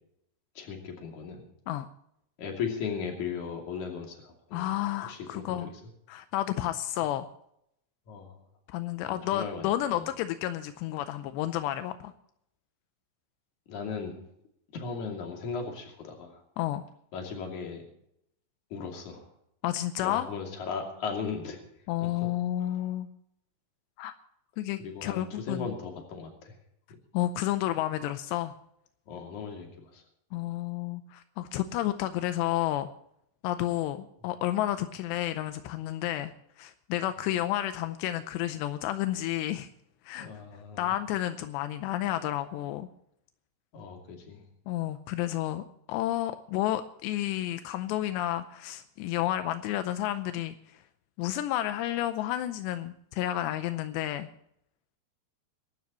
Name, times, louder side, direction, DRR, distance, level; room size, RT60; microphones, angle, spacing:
voice 1, 0.6-1.5 2.4-4.7 5.0-5.7 8.1-8.4 9.0-10.1 13.7-14.2 14.7-16.4 17.1-17.8 18.7-19.3 20.0-21.6 22.0-22.3 24.8-26.5 29.1-30.0 40.2-40.9 43.7-44.4, left 5 dB, 50° left, 2 dB, 3.7 m, -37 dB
voice 2, 4.5-5.7 6.1-7.3 8.7-12.1 16.6-16.9 19.6-20.3 21.9-23.1 24.0-24.1 24.6-25.7 27.1-28.5 30.3-32.9 33.4-39.7 40.0-40.3 40.8-42.9 44.7-50.8 51.2-54.3, left 13 dB, 85° left, 10 dB, 2.8 m, -31 dB
24.0 x 12.5 x 3.0 m, 0.75 s
omnidirectional pair, 5.0 m